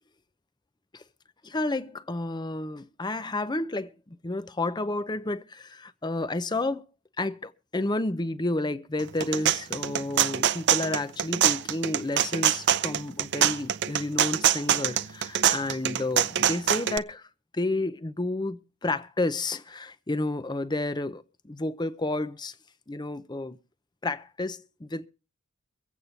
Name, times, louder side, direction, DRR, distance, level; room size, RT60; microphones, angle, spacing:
voice 1, 1.4-6.8 7.2-17.3 17.5-22.5 22.9-23.6 24.0-25.1, left 2 dB, 20° left, 0.6 m, -31 dB
sound 1, 9.0-17.0, right 10 dB, 55° right, 0.6 m, -24 dB
23.5 x 8.5 x 4.1 m
head